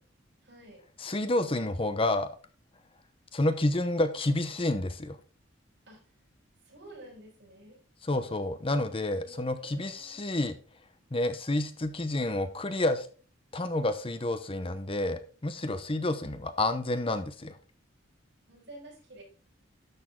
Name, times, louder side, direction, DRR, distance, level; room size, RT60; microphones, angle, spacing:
voice 1, 0.4-0.8 5.9-6.0 6.6-7.8 9.1-10.2 16.0-16.4 18.5-19.2, right 1 dB, 60° right, -1 dB, 6.1 m, -50 dB
voice 2, 1.0-2.3 3.3-5.2 8.1-10.5 11.1-13.1 13.5-17.6, left 2 dB, 30° left, 10 dB, 0.8 m, -29 dB
12.0 x 6.7 x 3.8 m, 0.38 s
head